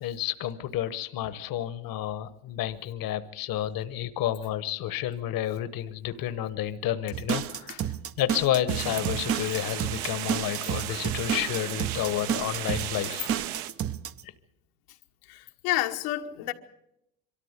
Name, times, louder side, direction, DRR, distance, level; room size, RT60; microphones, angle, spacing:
voice 1, 0.0-7.8 8.2-13.3, left 12 dB, 50° left, 1.1 m, -30 dB
sound 1, 7.1-14.2, right 9 dB, 30° right, 0.7 m, -31 dB
sound 2, 8.7-13.7, right 12 dB, 60° right, 1.1 m, -35 dB
voice 2, 15.3-16.5, left 15 dB, 85° left, 1.4 m, -30 dB
23.5 x 13.5 x 8.1 m
supercardioid pair, 90°, 44 cm